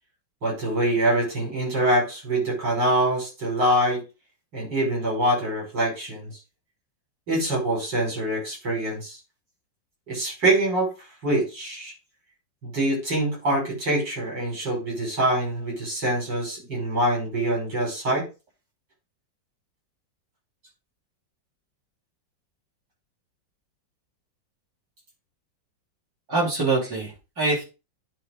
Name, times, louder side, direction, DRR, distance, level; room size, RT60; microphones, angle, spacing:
voice 1, 0.4-4.0 4.5-6.3 7.3-9.2 10.1-10.9 11.2-11.9 12.6-18.3, right 1 dB, 70° right, -2 dB, 5.8 m, -24 dB
voice 2, 26.3-27.6, right 3 dB, 50° right, -4 dB, 3.9 m, -24 dB
10.0 x 3.6 x 4.9 m, 0.29 s
omnidirectional pair, 2.0 m